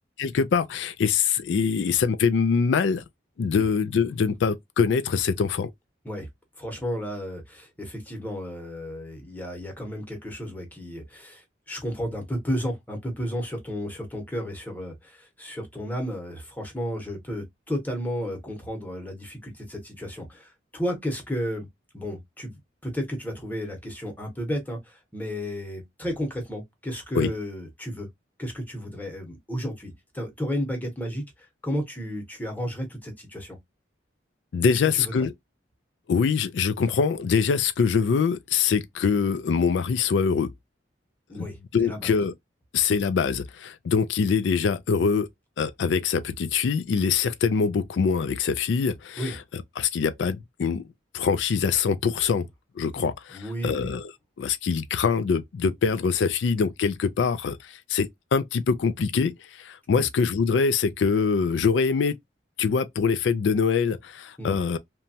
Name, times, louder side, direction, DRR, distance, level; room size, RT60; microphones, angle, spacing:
voice 1, 0.2-3.0 3.4-5.7 27.2-27.3 34.5-35.3 36.1-40.5 41.3-41.5 41.7-42.3 42.7-45.3 45.6-50.9 51.1-52.5 52.8-53.4 53.6-54.1 54.4-62.2 62.6-64.8, left 5 dB, 80° left, 0.3 m, -24 dB
voice 2, 6.6-21.7 21.9-28.1 28.4-33.6 34.9-35.3 41.3-41.6 41.8-42.1 49.2-49.3 53.0-53.1 53.3-53.9 59.9-60.1 64.4-64.6, equal, 10° left, 0.8 m, -33 dB
3.0 x 2.2 x 2.6 m
head